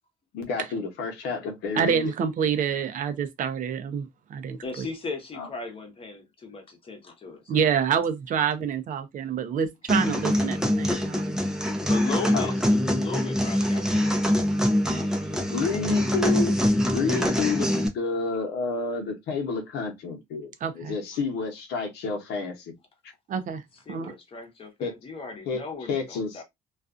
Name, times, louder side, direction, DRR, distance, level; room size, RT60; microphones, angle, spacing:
voice 1, 0.3-2.1 5.4-5.5 12.3-12.5 15.5-16.6 16.9-22.7 24.8-24.9 25.5-25.6 25.9-26.4, left 4 dB, 80° left, 0.9 m, -30 dB
voice 2, 1.8-4.6 7.5-11.3 20.6-20.9 23.3-23.6 23.9-24.1, right 7 dB, 50° right, 0.5 m, -27 dB
voice 3, 4.6-7.7 11.8-12.6 13.0-14.3 14.8-15.5 23.9-26.4, left 4 dB, 35° left, 0.9 m, -37 dB
sound 1, 9.9-17.9, equal, 5° right, 0.5 m, -24 dB
2.4 x 2.3 x 2.4 m
cardioid pair, 110°, 17 cm